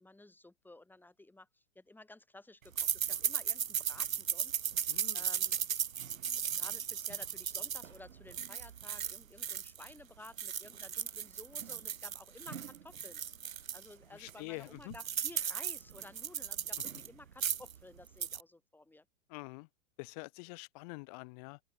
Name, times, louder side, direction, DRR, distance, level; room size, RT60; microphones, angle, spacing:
voice 1, 0.0-4.6 5.1-5.6 6.4-13.2 13.7-19.0, left 2 dB, 5° left, 6.6 m, -54 dB
sound 1, 2.8-9.9 10.2-13.9 14.3-14.4 14.6-17.1 17.3-17.8 18.1-18.4, right 8 dB, 80° right, 1.0 m, -36 dB
voice 2, 4.9-5.2 14.1-14.9 19.3-19.7 20.0-21.6, left 30 dB, 30° left, 0.6 m, -46 dB
open air
figure-of-eight pair, 110°, 40 cm